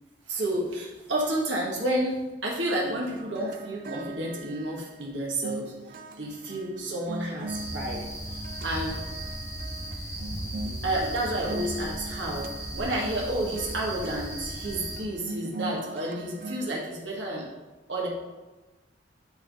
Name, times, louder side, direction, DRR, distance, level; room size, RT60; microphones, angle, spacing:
voice 1, 0.3-2.1 2.4-5.6 6.2-8.0 8.6-9.0 10.8-12.5 12.7-17.4 17.9-18.1, right 1 dB, 90° right, -3 dB, 1.6 m, -30 dB
sound 1, 2.8-16.7, right 2 dB, 50° right, 0.4 m, -41 dB
sound 2, 7.5-15.0, right 1 dB, 15° left, 1.2 m, -36 dB
8.8 x 3.7 x 4.8 m, 1.2 s
head